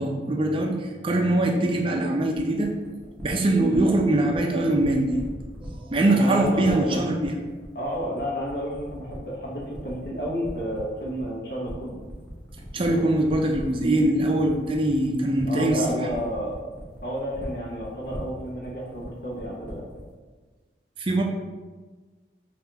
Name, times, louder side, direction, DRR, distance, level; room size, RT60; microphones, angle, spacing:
voice 1, 0.0-2.7 3.2-5.2 5.6-7.3 12.7-16.0 21.0-21.2, right 1 dB, 30° right, 2 dB, 0.4 m, -22 dB
sound 1, 2.3-20.1, equal, 10° left, 0.8 m, -41 dB
voice 2, 6.0-7.0 7.7-12.0 15.5-16.6 17.0-19.9, equal, 60° left, -4 dB, 0.8 m, -31 dB
5.4 x 2.4 x 2.7 m, 1.4 s
head